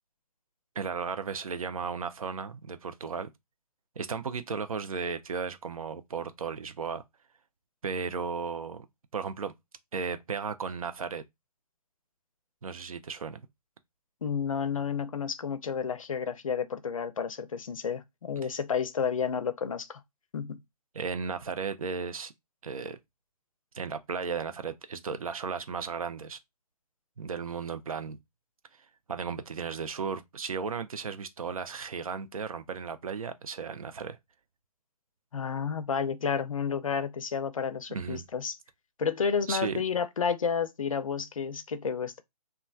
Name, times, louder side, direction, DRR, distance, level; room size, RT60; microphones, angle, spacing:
voice 1, 0.8-3.3 4.0-7.0 7.8-8.9 9.1-9.5 9.9-11.2 12.6-13.4 20.9-22.3 22.6-23.0 23.7-26.4 27.2-28.2 29.1-34.2 37.9-38.2 39.5-39.8, right 5 dB, 55° right, 0.4 m, -35 dB
voice 2, 14.2-20.0 20.3-20.6 35.3-38.6 39.0-42.2, left 6 dB, 55° left, 0.5 m, -31 dB
3.0 x 2.2 x 2.2 m
figure-of-eight pair, 140°, 21 cm